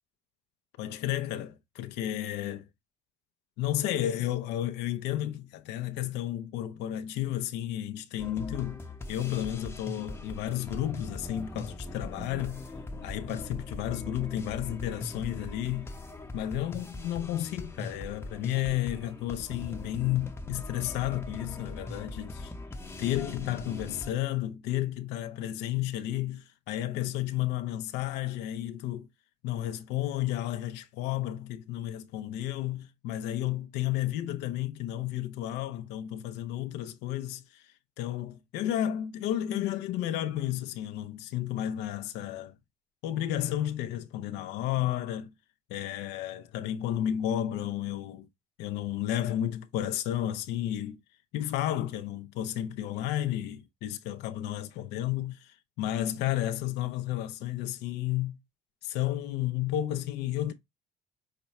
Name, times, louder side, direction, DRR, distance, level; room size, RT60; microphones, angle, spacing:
voice 1, 0.8-2.7 3.6-8.8 9.1-12.6 13.0-15.9 16.3-22.5 23.0-29.1 29.4-42.5 43.0-45.3 45.7-48.3 48.6-51.0 51.3-58.4 58.8-60.5, left 12 dB, 90° left, 0.6 m, -32 dB
Music for dark moments, 8.2-24.1, left 2 dB, 15° left, 0.8 m, -41 dB
5.9 x 2.2 x 4.1 m
cardioid pair, 110°, 17 cm